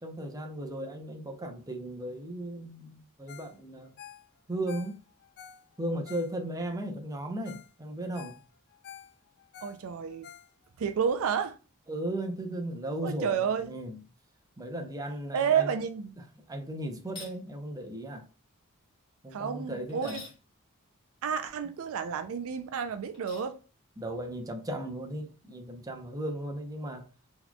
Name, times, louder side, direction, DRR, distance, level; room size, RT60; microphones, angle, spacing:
voice 1, 0.0-3.9 4.5-5.0 5.8-8.4 11.9-14.0 14.6-15.8 16.2-18.3 19.2-20.2 24.0-27.1, right 1 dB, 15° right, 0.6 m, -36 dB
Ringtone, 3.3-3.6 3.8-6.7 7.1-7.2 7.4-7.7 8.0-10.9 11.3-11.4, left 9 dB, 50° left, 0.3 m, -50 dB
voice 2, 9.6-10.3 10.8-11.6 13.0-13.7 15.3-16.1 19.3-20.2 21.2-23.6, right 7 dB, 65° right, 0.4 m, -30 dB
sound 1, 17.0-17.4 19.9-20.4 23.1-23.5, left 3 dB, 25° left, 2.0 m, -46 dB
4.0 x 3.0 x 2.2 m
head